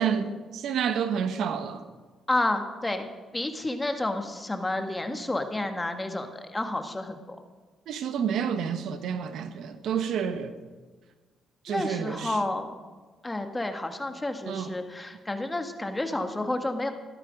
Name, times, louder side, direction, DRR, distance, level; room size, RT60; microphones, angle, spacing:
voice 1, 0.0-1.8 7.9-10.5 11.6-12.4 14.5-14.7, right 7 dB, 75° right, 1.1 m, -29 dB
voice 2, 2.3-3.1 3.3-7.4 11.7-12.7 13.2-16.9, left 2 dB, 15° left, 1.7 m, -30 dB
15.0 x 12.5 x 5.2 m
cardioid pair, 90°, 0 cm